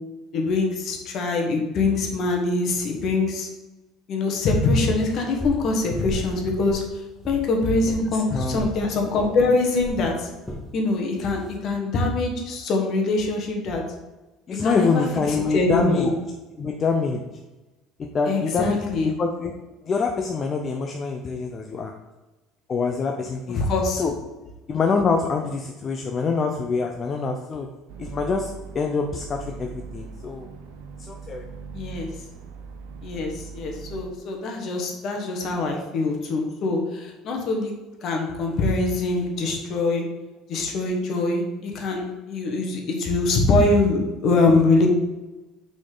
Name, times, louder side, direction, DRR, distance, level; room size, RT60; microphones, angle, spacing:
voice 1, 0.3-3.5 4.1-6.8 7.2-10.3 10.7-13.8 14.6-16.1 18.3-19.1 23.5-24.0 31.7-32.1 33.0-37.7 38.0-40.0 40.5-44.9, left 3 dB, 55° left, 2 dB, 1.4 m, -23 dB
sound 1, 5.4-5.7 6.0-6.3 6.6-7.4 7.8-8.0 8.5-8.7 9.2-9.3 9.8-10.0 10.4-10.6 11.2-11.6, left 1 dB, 15° left, 1.7 m, -34 dB
voice 2, 8.3-8.6 14.5-16.1 16.6-17.2 18.0-19.5 19.8-21.9 22.7-23.6 24.0-24.1 24.7-27.7 28.0-30.5 31.1-31.5, left 4 dB, 35° left, 3 dB, 0.6 m, -25 dB
sound 2, 27.9-34.0, right 5 dB, 80° right, 0.7 m, -40 dB
6.2 x 4.2 x 3.9 m, 1.1 s
supercardioid pair, 80°, 0 cm